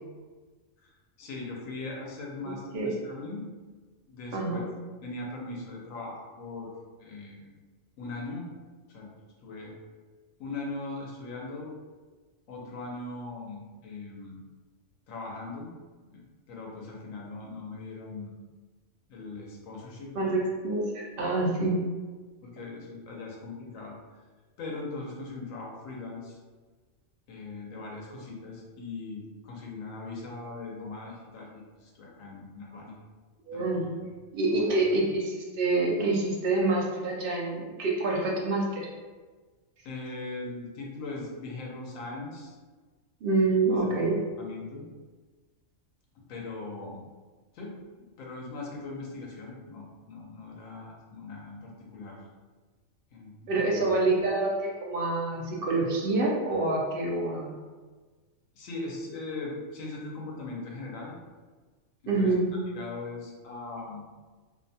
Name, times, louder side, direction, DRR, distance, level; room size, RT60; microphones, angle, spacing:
voice 1, 1.2-3.5 4.1-4.6 5.0-6.7 7.0-7.5 8.0-8.5 8.9-9.1 9.4-9.8 10.4-11.7 12.5-14.4 15.1-15.7 16.1-16.2 16.5-18.3 19.1-20.4 22.4-24.0 24.6-26.4 27.3-33.0 33.5-34.1 34.5-34.8 39.8-42.6 43.7-44.0 44.4-44.8 46.1-47.0 47.5-52.2 53.1-53.8 58.6-61.1 62.2-62.3 62.7-64.0, left 3 dB, 75° left, -2 dB, 1.0 m, -40 dB
voice 2, 4.3-4.7 20.1-21.8 33.5-33.9 34.3-38.9 43.2-44.1 53.5-57.5 62.1-62.5, right 2 dB, 65° right, -2 dB, 0.5 m, -27 dB
2.7 x 2.2 x 2.6 m, 1.4 s
omnidirectional pair, 1.4 m